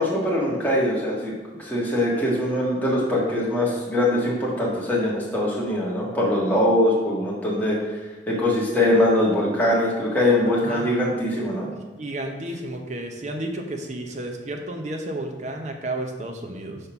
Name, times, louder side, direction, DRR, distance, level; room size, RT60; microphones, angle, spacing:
voice 1, 0.0-1.3 1.6-7.8 8.3-11.7, left 1 dB, 10° left, -5 dB, 1.5 m, -22 dB
voice 2, 10.4-10.9 12.0-16.8, right 1 dB, 40° right, 3 dB, 0.8 m, -32 dB
5.2 x 4.2 x 5.8 m, 1.2 s
head